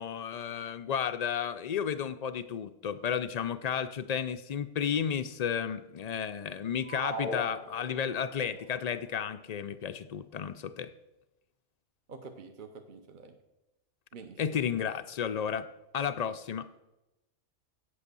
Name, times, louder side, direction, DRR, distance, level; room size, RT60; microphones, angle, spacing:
voice 1, 0.0-10.9 14.4-15.7 15.9-16.7, left 8 dB, 75° left, 12 dB, 0.3 m, -32 dB
sound 1, 6.8-8.3, right 1 dB, 90° right, 2.7 m, -38 dB
voice 2, 12.1-13.4 14.1-14.6, right 4 dB, 45° right, 6 dB, 0.8 m, -47 dB
8.5 x 8.2 x 6.8 m, 0.96 s
omnidirectional pair, 1.2 m